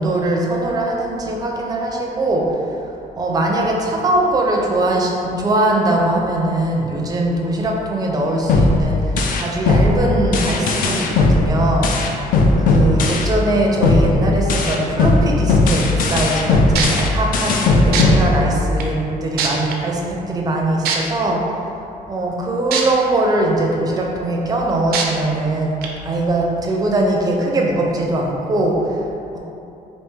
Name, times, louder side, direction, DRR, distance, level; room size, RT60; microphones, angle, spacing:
voice 1, 0.0-2.7 3.2-11.9 12.6-21.4 22.1-29.0 29.3-29.4, right 1 dB, 25° right, -1 dB, 0.4 m, -21 dB
sound 1, 8.5-13.5 13.8-18.9, left 2 dB, 65° left, 0.4 m, -17 dB
sound 2, 16.4-16.5 16.7-17.0 17.9-18.0 18.8-18.9 19.4-19.7 20.8-21.0 22.7-22.8 23.3-23.4 24.9-25.0 25.8-25.9, right 6 dB, 85° right, 0.4 m, -20 dB
3.4 x 2.6 x 3.1 m, 2.8 s
cardioid pair, 160°, 16 cm